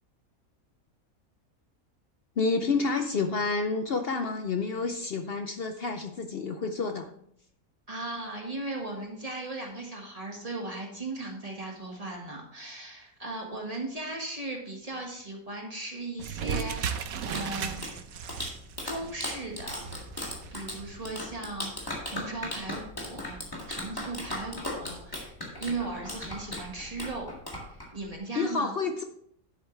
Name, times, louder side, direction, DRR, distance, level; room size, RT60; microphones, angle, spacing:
voice 1, 2.4-7.1 28.4-29.0, left 4 dB, 60° left, 7 dB, 0.7 m, -29 dB
voice 2, 7.9-17.8 18.2-18.3 18.8-20.1 20.5-23.4 23.7-27.3 27.7-28.7, right 2 dB, 25° right, 0 dB, 1.6 m, -37 dB
sound 1, 16.2-21.2, right 7 dB, 75° right, 1.2 m, -36 dB
Clapping, 17.0-28.2, left 1 dB, 15° left, 1.8 m, -38 dB
10.5 x 8.0 x 3.2 m, 0.68 s
omnidirectional pair, 1.5 m